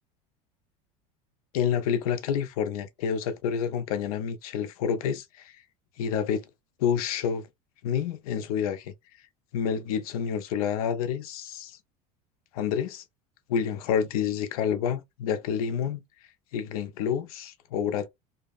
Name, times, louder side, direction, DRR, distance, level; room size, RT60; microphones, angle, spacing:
voice 1, 1.5-5.5 6.0-6.4 6.8-7.5 7.8-8.9 9.5-11.8 12.5-13.0 13.5-16.0 16.5-18.1, left 8 dB, 80° left, 0.6 m, -28 dB
2.7 x 2.0 x 2.4 m
supercardioid pair, 110°, 18 cm